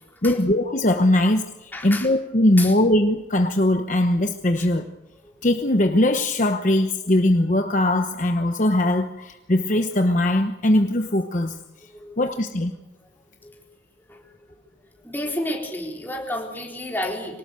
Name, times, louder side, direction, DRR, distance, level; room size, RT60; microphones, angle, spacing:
voice 1, 0.2-4.9 5.4-11.6 12.2-12.7, left 1 dB, 45° left, 6 dB, 1.0 m, -20 dB
voice 2, 1.7-2.1 2.6-2.7 4.6-4.7 5.2-5.3 11.8-12.2 13.0-13.1 13.4-13.6 14.1-14.5 15.0-17.4, left 1 dB, 10° left, -1 dB, 4.1 m, -31 dB
25.0 x 19.0 x 6.9 m, 0.97 s
head